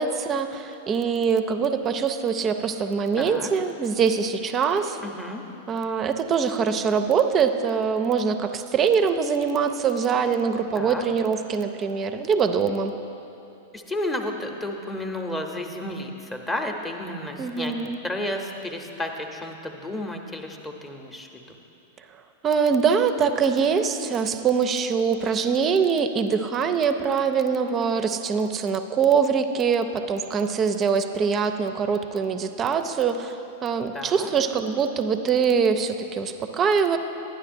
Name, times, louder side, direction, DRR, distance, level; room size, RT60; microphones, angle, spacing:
voice 1, 0.0-5.0 5.7-12.9 17.4-18.0 22.4-33.4 33.6-37.0, right 6 dB, 30° right, 8 dB, 0.4 m, -23 dB
voice 2, 3.1-3.5 5.0-5.4 10.7-11.0 13.7-17.7 18.0-21.6 33.9-34.3, left 1 dB, 15° left, 3 dB, 0.7 m, -32 dB
11.0 x 10.0 x 2.6 m, 2.9 s
figure-of-eight pair, 100°, 0 cm